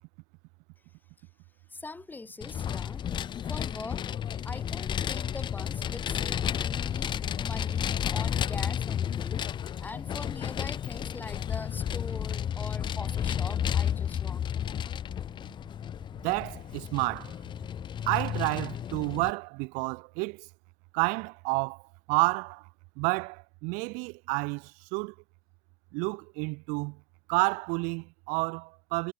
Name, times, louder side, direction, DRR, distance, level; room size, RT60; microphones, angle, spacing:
voice 1, 1.7-3.0 3.5-4.1 4.4-9.5 9.8-14.4, left 3 dB, 15° left, 3.5 m, -43 dB
Vehicle, 2.4-19.3, left 9 dB, 35° left, 0.9 m, -32 dB
voice 2, 16.2-17.3 18.1-20.5 20.9-21.8 22.1-22.7 23.0-25.1 25.9-27.0 27.3-29.1, right 30 dB, 70° right, 0.6 m, -30 dB
supercardioid pair, 105°, 13 cm